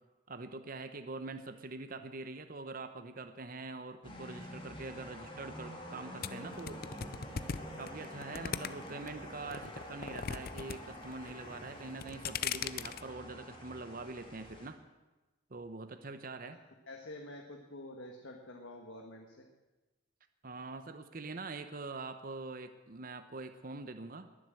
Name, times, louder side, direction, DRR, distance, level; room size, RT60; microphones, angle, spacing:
voice 1, 0.3-6.8 7.8-14.8 15.5-16.6 20.4-24.3, right 3 dB, 45° right, 9 dB, 0.8 m, -44 dB
sound 1, 4.0-14.7, left 1 dB, 25° left, 2.4 m, -47 dB
sound 2, 6.2-9.1 9.5-10.8 11.0-11.5 11.9-13.0, left 7 dB, 50° left, 0.5 m, -38 dB
voice 2, 16.9-19.4, left 1 dB, 75° left, 2 dB, 1.5 m, -48 dB
20.5 x 7.6 x 7.7 m, 1.1 s
head